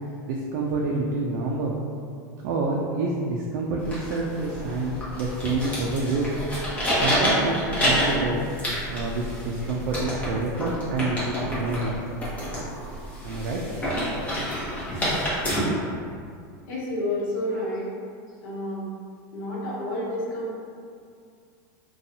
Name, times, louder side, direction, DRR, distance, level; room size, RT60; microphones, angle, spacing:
voice 1, 0.3-1.7 2.4-6.3 6.9-8.5 8.9-11.9 12.8-12.9 13.2-13.6 14.0-14.1, right 3 dB, 65° right, -2 dB, 0.4 m, -28 dB
sound 1, 3.8-15.6, equal, 15° left, 0.8 m, -28 dB
voice 2, 16.7-17.9 18.4-18.8 19.3-20.6, left 1 dB, 85° left, -6 dB, 0.9 m, -29 dB
2.6 x 2.3 x 2.7 m, 2.3 s
supercardioid pair, 130°, 10 cm